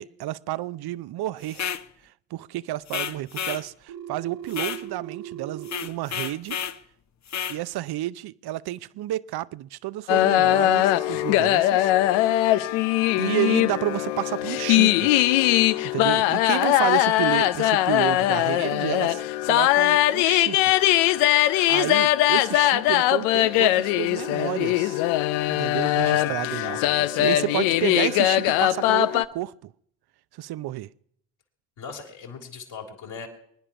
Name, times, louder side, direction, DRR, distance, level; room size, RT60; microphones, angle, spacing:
voice 1, 0.0-1.7 2.3-6.6 7.5-11.9 12.2-12.5 13.2-15.1 15.9-20.6 20.9-21.2 21.4-25.0 25.5-26.8 27.2-29.7 30.4-30.9, right 15 dB, 50° right, 0.6 m, -31 dB
sound 1, 1.5-1.8 2.9-3.6 4.5-4.8 5.6-6.8 7.3-7.6, left 8 dB, 35° left, 0.8 m, -31 dB
Telephone, 3.9-5.9, right 11 dB, 80° right, 1.8 m, -38 dB
sound 2, 10.1-29.3, left 15 dB, 80° left, 0.7 m, -21 dB
voice 2, 26.0-28.1 31.8-33.3, left 6 dB, 65° left, 3.6 m, -41 dB
23.0 x 10.0 x 5.8 m
hypercardioid pair, 60°, 48 cm